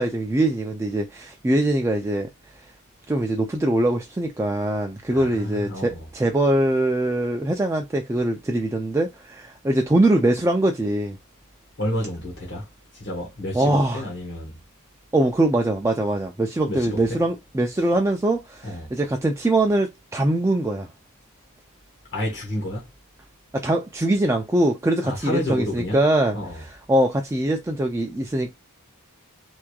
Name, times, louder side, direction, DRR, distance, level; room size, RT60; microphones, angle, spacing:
voice 1, 0.0-2.3 3.1-11.2 13.5-14.0 15.1-20.9 23.5-28.5, right 1 dB, 15° right, 0.4 m, -22 dB
voice 2, 5.1-6.0 11.8-12.7 12.9-14.6 16.7-17.2 18.6-18.9 22.1-22.9 25.0-26.0 26.3-26.6, left 1 dB, 55° left, 1.1 m, -30 dB
3.4 x 3.1 x 2.3 m
head